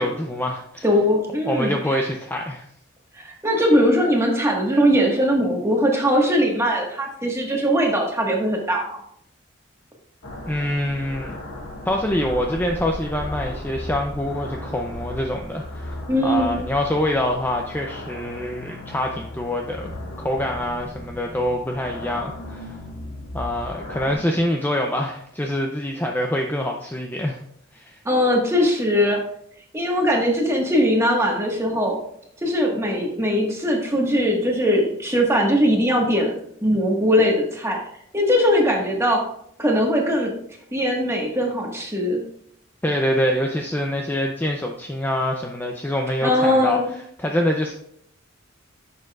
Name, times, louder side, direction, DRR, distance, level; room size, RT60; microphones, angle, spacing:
voice 1, 0.0-0.8 1.4-2.6 10.5-11.4 11.9-16.0 16.2-19.9 20.2-22.8 23.3-27.4 27.7-28.0 42.8-46.8 47.2-47.7, left 1 dB, 10° left, 1 dB, 0.5 m, -25 dB
voice 2, 0.8-2.0 3.2-9.0 16.1-16.6 28.0-29.2 29.7-32.0 32.4-37.8 38.1-39.2 39.6-40.3 40.7-42.2 46.2-46.9, equal, 15° right, -1 dB, 1.5 m, -20 dB
sound 1, 10.2-24.1, left 1 dB, 85° left, 1.8 m, -36 dB
10.0 x 6.7 x 2.4 m, 0.70 s
head